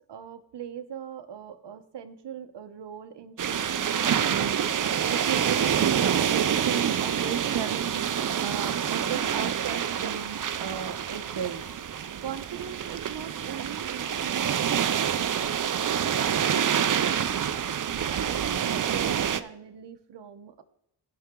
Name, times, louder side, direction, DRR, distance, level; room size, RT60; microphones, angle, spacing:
voice 1, 0.1-11.6 12.2-17.4 17.9-20.6, right 8 dB, 70° right, 9 dB, 1.0 m, -38 dB
sound 1, 3.4-19.4, right 8 dB, 45° right, 0.6 m, -27 dB
16.5 x 5.8 x 3.8 m, 0.78 s
cardioid pair, 90°, 44 cm